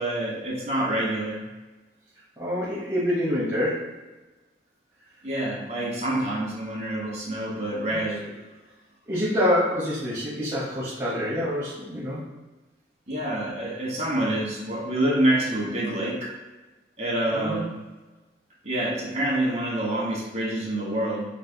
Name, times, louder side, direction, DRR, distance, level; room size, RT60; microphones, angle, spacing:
voice 1, 0.0-1.4 5.2-8.2 13.1-16.3 17.0-17.7 18.6-21.2, right 1 dB, 40° right, -5 dB, 1.3 m, -27 dB
voice 2, 2.4-3.9 7.9-8.0 9.1-12.2 17.3-17.6, equal, 15° right, -9 dB, 0.9 m, -26 dB
4.1 x 4.1 x 2.2 m, 1.1 s
head